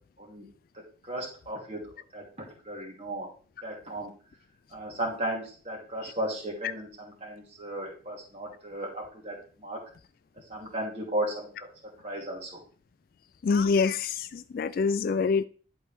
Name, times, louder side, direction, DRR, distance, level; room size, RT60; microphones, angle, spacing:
voice 1, 1.0-2.2 2.6-3.3 3.6-4.1 4.7-9.8 10.5-11.5 12.0-12.6, right 1 dB, 35° right, 2.7 m, -35 dB
voice 2, 13.4-15.5, left 5 dB, 50° left, 0.3 m, -25 dB
11.0 x 4.5 x 3.6 m
head